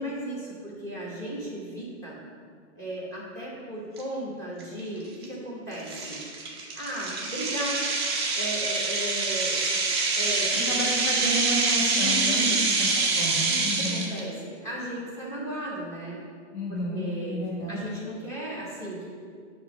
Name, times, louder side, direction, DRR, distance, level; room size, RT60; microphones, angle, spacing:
voice 1, 0.0-2.2 2.8-6.2 6.7-7.8 8.3-10.7 11.1-11.2 11.9-12.6 13.4-16.2 16.7-17.4 17.7-19.1, right 1 dB, 10° left, -5 dB, 0.8 m, -35 dB
sound 1, 4.0-4.1 4.6-4.8 5.2-5.3 5.9-14.2, right 3 dB, 25° right, 0.4 m, -26 dB
voice 2, 10.7-14.1 16.5-17.8, left 1 dB, 30° left, -8 dB, 1.5 m, -32 dB
6.8 x 3.0 x 5.9 m, 2.1 s
hypercardioid pair, 170°, 36 cm